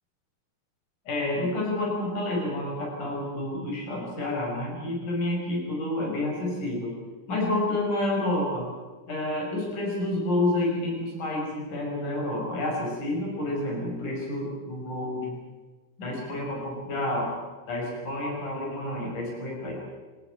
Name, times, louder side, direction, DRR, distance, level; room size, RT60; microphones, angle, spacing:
voice 1, 1.1-7.0 7.3-8.7 9.1-15.3 16.0-17.4 17.7-19.9, left 1 dB, 75° left, -1 dB, 7.0 m, -29 dB
27.5 x 14.0 x 9.2 m, 1.3 s
omnidirectional pair, 3.7 m